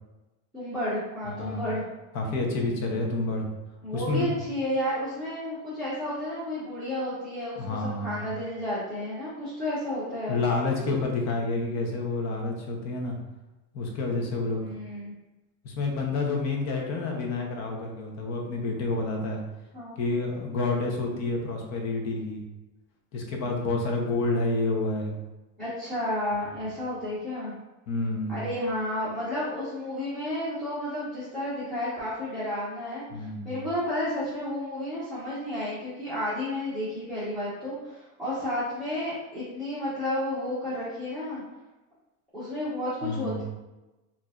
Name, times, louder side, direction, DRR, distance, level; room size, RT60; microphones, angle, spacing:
voice 1, 0.5-1.8 3.8-10.4 14.6-15.1 19.7-19.9 25.6-27.5 28.3-41.4 42.3-43.4, left 1 dB, ahead, -14 dB, 1.2 m, -32 dB
voice 2, 1.3-1.7 2.1-3.5 3.9-4.3 7.6-8.3 10.3-13.1 13.7-14.7 15.6-19.4 20.0-22.4 23.1-25.1 27.9-28.4 33.1-33.6 43.0-43.4, left 3 dB, 50° left, 1 dB, 0.9 m, -29 dB
4.6 x 2.8 x 2.5 m, 1.1 s
cardioid pair, 150°, 34 cm